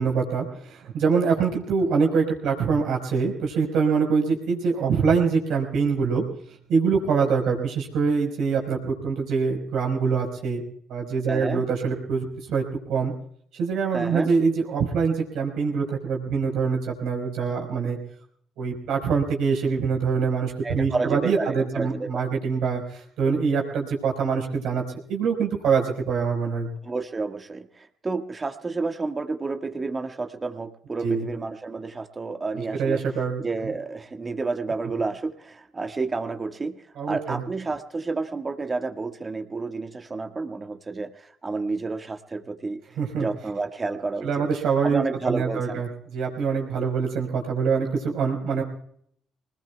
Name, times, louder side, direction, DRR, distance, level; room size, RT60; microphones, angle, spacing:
voice 1, 0.0-6.2 6.7-10.6 10.9-12.6 12.9-13.1 13.5-18.0 18.6-24.8 25.1-26.7 31.0-31.3 32.5-33.7 37.0-37.4 43.0-43.3 44.2-48.6, right 5 dB, 75° right, 1 dB, 4.7 m, -24 dB
voice 2, 11.3-11.6 13.9-14.3 20.6-22.3 26.8-33.0 33.4-42.8 43.1-44.5 44.8-45.8, right 3 dB, 30° right, 6 dB, 1.7 m, -30 dB
25.5 x 20.0 x 2.3 m, 0.66 s
supercardioid pair, 60°, 0 cm